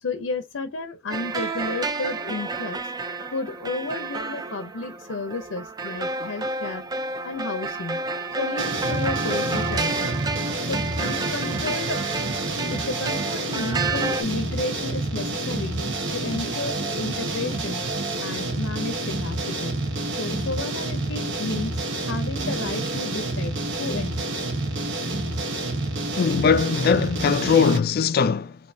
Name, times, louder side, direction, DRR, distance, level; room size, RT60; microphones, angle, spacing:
voice 1, 0.0-2.9 3.3-6.9 7.2-8.0 8.4-10.2 10.7-12.0 12.7-17.8 18.2-19.7 20.2-21.8 22.1-24.5, left 3 dB, 80° left, 0.7 m, -32 dB
sound 1, 1.1-14.2, right 3 dB, 20° right, 0.4 m, -30 dB
sound 2, 8.6-27.8, right 2 dB, 60° right, 1.0 m, -28 dB
voice 2, 26.2-28.6, left 6 dB, 50° left, 0.3 m, -20 dB
5.3 x 2.7 x 2.7 m
head